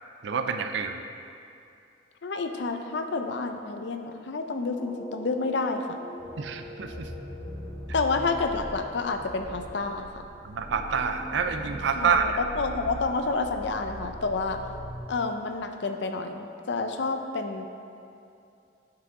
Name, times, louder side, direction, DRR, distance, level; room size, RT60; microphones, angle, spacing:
voice 1, 0.2-1.0 6.4-7.1 10.4-12.4, right 6 dB, 65° right, 7 dB, 0.4 m, -27 dB
voice 2, 2.2-6.0 7.9-10.1 12.0-14.6 15.1-17.7, left 3 dB, 70° left, 6 dB, 0.6 m, -29 dB
sound 1, 4.8-10.3, left 1 dB, ahead, 0.7 m, -45 dB
sound 2, 6.2-15.0, equal, 30° left, 1.8 m, -41 dB
9.5 x 6.1 x 3.6 m, 2.6 s
head